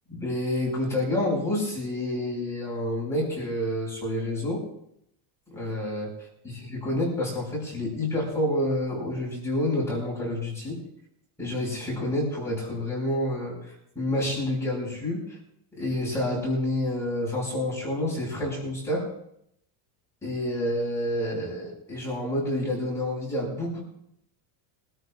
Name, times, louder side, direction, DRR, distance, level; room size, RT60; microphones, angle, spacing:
voice 1, 0.1-4.7 5.5-6.1 6.4-10.8 11.4-13.6 14.0-15.4 15.7-19.1 20.2-23.8, left 1 dB, 5° left, -6 dB, 5.7 m, -28 dB
25.5 x 13.5 x 2.5 m, 0.75 s
cardioid pair, 165°, 49 cm